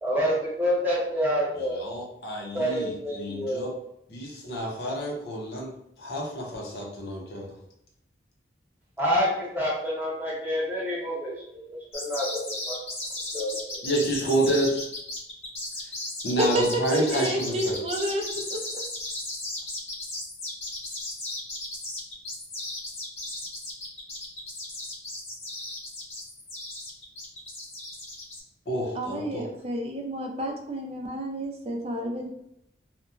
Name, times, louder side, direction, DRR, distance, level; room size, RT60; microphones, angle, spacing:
voice 1, 0.0-1.9 2.5-3.8 9.0-12.8 13.3-13.9, equal, 10° right, -6 dB, 0.9 m, -28 dB
voice 2, 1.7-3.7 4.1-5.7 6.0-7.5 13.8-14.8 16.2-17.7 28.7-29.4, right 1 dB, 65° left, -1 dB, 0.7 m, -29 dB
sound 1, 11.9-28.4, left 2 dB, 35° left, 0.7 m, -35 dB
voice 3, 16.4-18.3 18.5-18.6 28.9-32.3, right 1 dB, 35° right, 2 dB, 0.4 m, -29 dB
2.9 x 2.2 x 2.4 m, 0.79 s
head